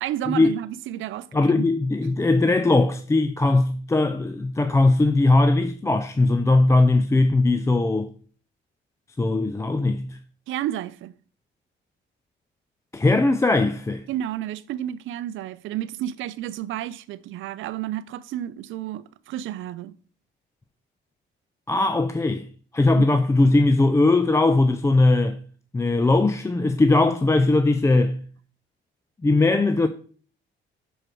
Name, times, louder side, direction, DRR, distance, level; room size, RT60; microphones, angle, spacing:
voice 1, 0.0-1.3 1.6-1.7 10.5-11.1 14.1-20.0 23.0-23.1, right 12 dB, 80° right, 0.5 m, -31 dB
voice 2, 1.3-8.1 9.2-10.2 12.9-14.0 21.7-22.5 22.7-25.4 25.7-28.2 29.2-29.9, left 2 dB, 15° left, 0.4 m, -19 dB
6.4 x 4.7 x 4.5 m
cardioid pair, 90°, 20 cm